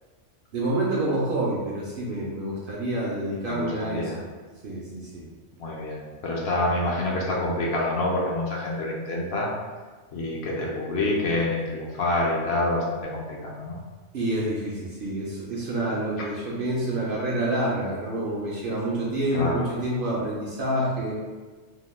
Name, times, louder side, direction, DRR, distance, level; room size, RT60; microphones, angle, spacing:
voice 1, 0.5-4.3 4.6-5.3 14.1-21.2, right 1 dB, 60° right, -5 dB, 0.6 m, -28 dB
voice 2, 3.5-4.2 5.6-9.5 10.1-13.8 19.3-19.7, left 2 dB, 65° left, -3 dB, 0.8 m, -27 dB
2.8 x 2.0 x 3.1 m, 1.4 s
omnidirectional pair, 1.2 m